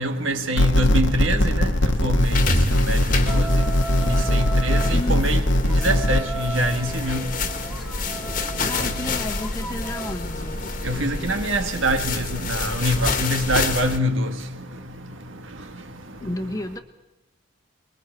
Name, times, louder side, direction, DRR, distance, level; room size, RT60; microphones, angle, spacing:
voice 1, 0.0-1.7 2.0-2.3 2.9-3.0 3.3-3.5 4.0-7.2 10.8-14.3, right 1 dB, 75° right, 1.6 m, -24 dB
sound 1, 0.6-6.2, left 1 dB, 65° left, 1.3 m, -20 dB
sound 2, 2.2-14.0, left 3 dB, 40° left, 1.6 m, -28 dB
sound 3, 3.3-5.0 5.7-10.1, right 3 dB, ahead, 1.0 m, -36 dB
voice 2, 4.9-5.3 8.6-10.6 16.2-16.8, left 1 dB, 15° left, 1.2 m, -31 dB
28.0 x 22.0 x 4.6 m
head